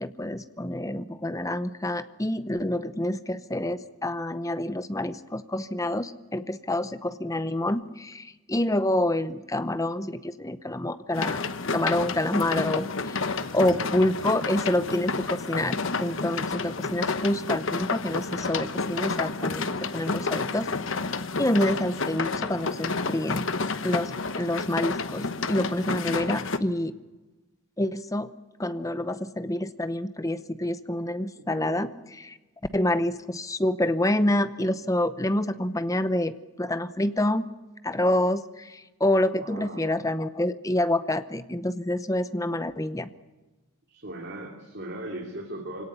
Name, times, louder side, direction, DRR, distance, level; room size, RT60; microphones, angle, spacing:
voice 1, 0.0-11.4 11.7-13.2 13.5-20.7 21.4-23.5 23.8-26.9 27.8-28.3 28.6-32.4 32.7-37.5 37.8-43.1, left 1 dB, 15° left, 13 dB, 0.7 m, -27 dB
sound 1, 11.1-26.6, left 4 dB, 60° left, 1.0 m, -30 dB
voice 2, 13.4-13.9 31.4-31.9 39.3-40.1 43.9-45.8, right 1 dB, 50° right, 1 dB, 2.9 m, -39 dB
24.0 x 18.0 x 10.0 m, 1.1 s
head